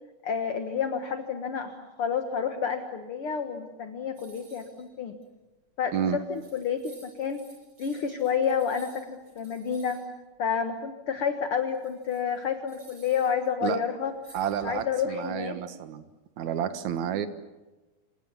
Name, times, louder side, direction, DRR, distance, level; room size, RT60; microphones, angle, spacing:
voice 1, 0.2-5.2 5.8-6.0 6.3-7.5 7.8-10.0 10.4-14.1 14.6-15.6, left 7 dB, 50° left, 6 dB, 1.8 m, -29 dB
sound 1, 4.2-4.9 5.2-5.3 6.0-6.1 6.3-10.0 11.6-13.5 14.2-15.0, right 2 dB, 30° right, 8.8 m, -55 dB
voice 2, 14.3-16.1 16.4-17.3, right 9 dB, 60° right, 10 dB, 2.5 m, -30 dB
27.0 x 27.0 x 7.3 m, 1.1 s
omnidirectional pair, 4.2 m